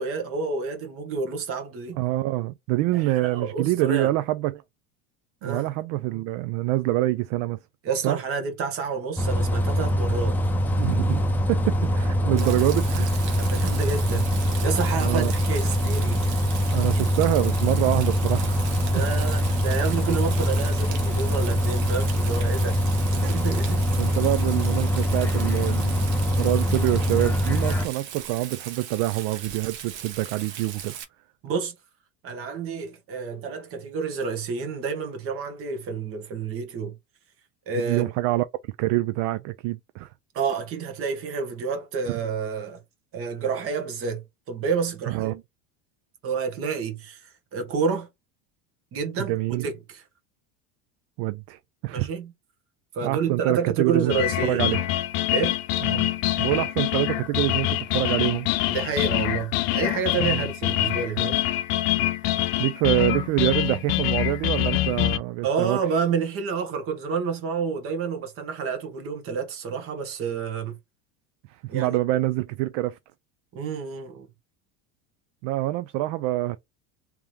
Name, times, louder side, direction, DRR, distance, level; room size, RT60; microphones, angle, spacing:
voice 1, 0.0-2.0 2.9-4.1 5.4-5.7 7.8-10.4 12.2-12.6 13.4-16.3 18.9-22.8 23.1-23.8 31.4-31.7 32.2-37.0 37.7-38.1 40.3-42.8 43.1-45.3 46.2-48.1 48.9-49.4 49.6-50.0 51.9-52.3 52.9-54.8 55.3-55.6 58.7-61.4 65.4-70.8 71.7-72.0 73.5-74.3, right 5 dB, 40° right, 1.3 m, -29 dB
voice 2, 2.0-4.6 5.4-7.6 8.0-8.2 10.8-11.2 11.5-13.1 15.0-15.3 16.7-18.7 24.0-31.0 37.7-40.1 45.1-45.4 49.3-49.7 51.2-52.1 53.0-54.2 54.4-54.8 55.9-56.1 56.4-58.5 60.2-60.5 62.6-65.8 71.7-73.0 75.4-76.6, right 17 dB, 60° right, 0.4 m, -26 dB
Bus, 9.2-27.9, equal, 5° left, 0.6 m, -23 dB
Rain, 12.4-31.0, right 8 dB, 80° right, 1.1 m, -38 dB
sound 1, 54.1-65.2, left 15 dB, 65° left, 0.7 m, -25 dB
3.5 x 3.0 x 3.2 m
supercardioid pair, 145°, 34 cm